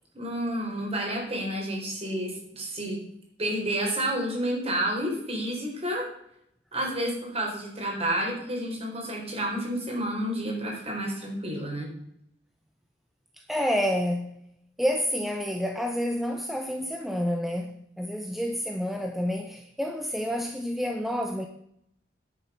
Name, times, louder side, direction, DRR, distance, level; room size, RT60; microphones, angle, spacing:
voice 1, 0.1-3.0 3.4-6.0 6.7-11.9, right 1 dB, 35° right, -1 dB, 4.2 m, -30 dB
voice 2, 13.5-14.4 14.8-21.5, equal, ahead, 4 dB, 0.7 m, -29 dB
10.0 x 8.5 x 5.6 m, 0.72 s
head